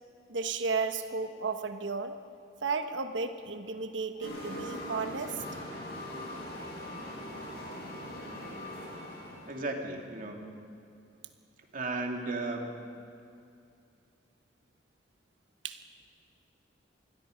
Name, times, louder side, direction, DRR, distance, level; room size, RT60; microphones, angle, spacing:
voice 1, 0.3-2.1 2.6-5.4 15.6-15.8, right 4 dB, 85° right, 8 dB, 1.2 m, -33 dB
sound 1, 4.2-9.7, left 1 dB, 60° left, 6.9 m, -41 dB
voice 2, 9.5-10.6 11.7-12.7, right 2 dB, 50° right, 2 dB, 2.7 m, -35 dB
26.5 x 21.0 x 5.2 m, 2.5 s
head